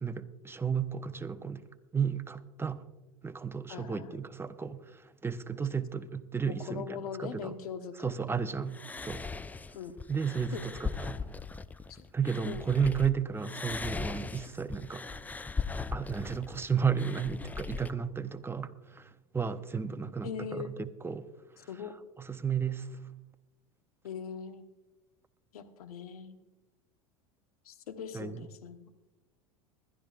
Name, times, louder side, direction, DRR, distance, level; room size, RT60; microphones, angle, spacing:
voice 1, 0.0-1.6 1.9-2.8 3.2-7.6 8.0-9.2 10.1-11.2 12.1-15.1 15.9-21.3 21.6-21.7 22.2-23.0 28.1-28.5, right 6 dB, 15° right, 11 dB, 0.8 m, -33 dB
voice 2, 3.7-4.2 6.5-8.4 9.7-10.0 10.5-10.6 11.9-12.1 12.5-12.7 20.2-20.7 21.7-21.9 24.0-24.6 25.5-26.4 27.6-28.8, left 7 dB, 80° left, 8 dB, 1.2 m, -41 dB
sound 1, 8.7-13.1 13.4-17.9, left 4 dB, 10° left, 0.3 m, -39 dB
20.5 x 12.5 x 2.5 m, 1.0 s
hypercardioid pair, 95°, 19 cm